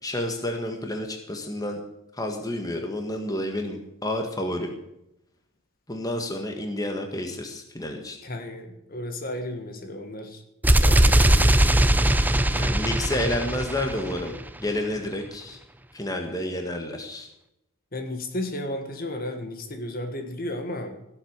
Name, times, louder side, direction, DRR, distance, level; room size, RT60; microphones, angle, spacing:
voice 1, 0.0-1.8 2.1-4.7 5.9-8.2 12.5-15.6 15.9-17.3, left 1 dB, 15° left, 4 dB, 1.6 m, -30 dB
voice 2, 8.2-10.4 10.8-12.7 17.9-21.0, left 1 dB, 40° left, 6 dB, 1.7 m, -34 dB
sound 1, 10.6-14.5, right 1 dB, 10° right, 0.5 m, -20 dB
17.0 x 8.0 x 8.0 m, 0.84 s
head